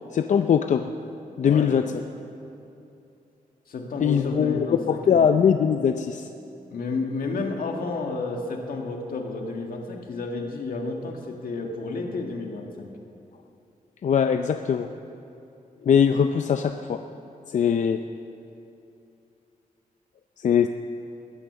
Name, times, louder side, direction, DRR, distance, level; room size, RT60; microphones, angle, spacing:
voice 1, 0.1-0.9 1.4-1.8 4.0-6.3 14.0-14.9 15.8-17.0 17.5-18.0 20.4-20.7, left 7 dB, 55° left, 7 dB, 0.5 m, -21 dB
voice 2, 1.4-1.7 3.7-5.3 6.7-12.9, left 3 dB, 80° left, 2 dB, 1.9 m, -31 dB
20.5 x 10.0 x 6.9 m, 2.8 s
wide cardioid pair, 150°, 15 cm